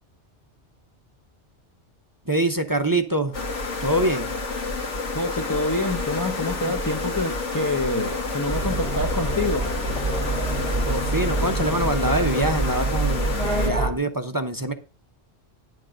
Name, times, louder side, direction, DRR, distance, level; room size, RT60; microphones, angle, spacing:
voice 1, 2.3-3.3 3.8-4.3 10.9-13.3 13.6-14.7, right 1 dB, 20° right, 0.8 m, -24 dB
sound 1, 3.3-13.7, left 3 dB, 85° left, 2.0 m, -29 dB
voice 2, 5.1-9.7, left 2 dB, 20° left, 0.6 m, -27 dB
sound 2, 8.5-13.9, right 3 dB, 5° left, 4.3 m, -26 dB
10.5 x 6.5 x 5.0 m
omnidirectional pair, 1.2 m